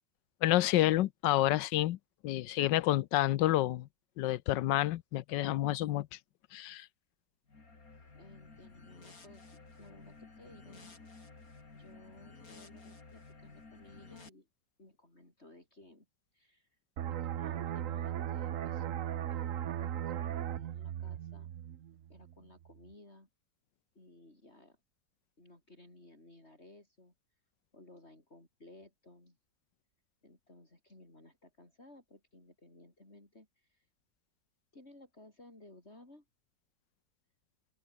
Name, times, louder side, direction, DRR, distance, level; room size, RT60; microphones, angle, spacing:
voice 1, 0.4-2.0 2.2-3.9 4.2-6.1 6.5-6.9, left 15 dB, 90° left, 1.4 m, -29 dB
sound 1, 7.5-14.3, left 3 dB, 55° left, 3.9 m, -54 dB
voice 2, 8.1-11.0 11.7-14.5 14.8-16.1 16.3-18.9 19.3-21.5 22.1-23.3 23.9-24.8 25.4-27.1 27.7-29.4 30.2-33.9 34.7-36.2, left 2 dB, 35° left, 6.6 m, -58 dB
sound 2, 17.0-22.3 22.7-22.9, right 10 dB, 55° right, 1.0 m, -37 dB
open air
omnidirectional pair, 1.9 m